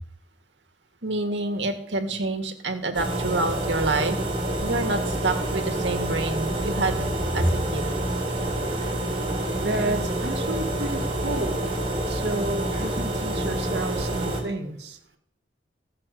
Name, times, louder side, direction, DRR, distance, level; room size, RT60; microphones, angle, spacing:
voice 1, 1.0-4.2 4.6-7.5 7.7-7.8, right 2 dB, 85° right, 5 dB, 1.9 m, -27 dB
sound 1, 2.9-14.4, right 1 dB, 30° right, 3.2 m, -27 dB
voice 2, 9.6-11.7 12.1-15.0, right 1 dB, 65° right, 4 dB, 1.8 m, -31 dB
15.0 x 6.4 x 7.6 m, 0.70 s
head